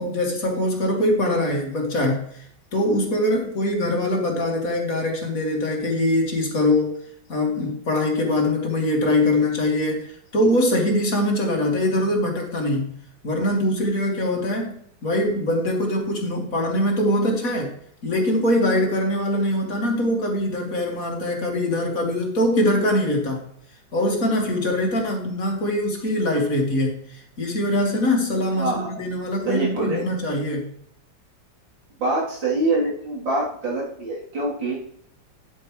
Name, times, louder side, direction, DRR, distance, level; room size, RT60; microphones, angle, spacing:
voice 1, 0.0-2.4 2.7-7.0 7.3-13.0 13.2-14.8 15.0-17.7 18.0-23.4 23.9-30.7, left 1 dB, 50° left, 1 dB, 2.5 m, -23 dB
voice 2, 28.5-29.0 29.5-30.0 32.0-34.8, right 2 dB, 85° right, -5 dB, 4.1 m, -25 dB
10.0 x 8.7 x 3.2 m, 0.68 s
omnidirectional pair, 2.0 m